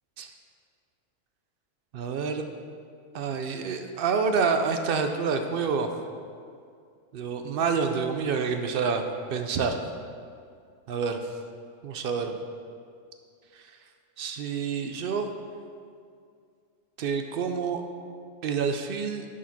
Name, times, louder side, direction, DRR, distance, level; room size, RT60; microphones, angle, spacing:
voice 1, 1.9-2.5 3.1-5.9 7.1-9.0 9.3-9.8 10.9-11.2 11.8-12.4 14.2-15.3 17.0-17.8 18.4-19.3, right 5 dB, 60° right, 6 dB, 0.6 m, -28 dB
6.9 x 4.8 x 5.9 m, 2.3 s
omnidirectional pair, 1.3 m